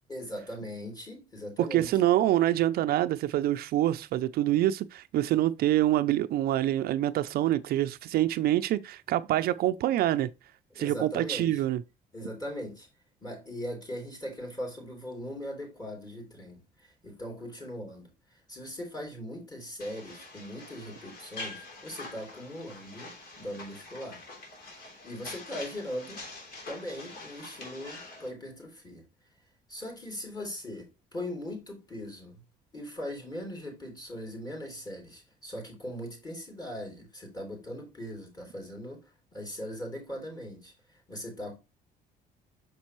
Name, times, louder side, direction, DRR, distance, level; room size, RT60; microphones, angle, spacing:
voice 1, 0.1-2.1 10.7-11.6 12.1-12.9 13.2-18.1 18.5-24.2 24.7-26.3 26.7-29.0 29.7-32.4 32.7-41.6, equal, 25° left, 3.7 m, -40 dB
voice 2, 1.7-10.3 10.8-11.8, right 13 dB, 65° right, 0.5 m, -26 dB
sound 1, 19.8-28.3, left 2 dB, 60° left, 3.3 m, -45 dB
6.6 x 5.3 x 3.0 m
cardioid pair, 110°, 17 cm